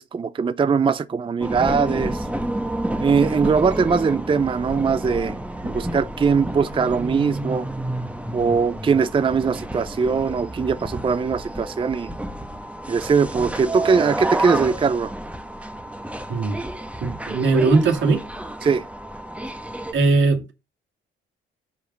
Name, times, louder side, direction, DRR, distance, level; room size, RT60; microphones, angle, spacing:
voice 1, 0.0-2.3 3.0-5.4 5.6-7.7 8.3-12.1 12.9-15.1 18.6-18.8, right 5 dB, 25° right, 0.5 m, -21 dB
sound 1, 1.4-19.9, right 1 dB, 5° right, 1.0 m, -30 dB
voice 2, 17.0-18.2 19.9-20.5, right 3 dB, 75° right, 2.5 m, -19 dB
8.1 x 4.8 x 5.6 m
cardioid pair, 90°, 20 cm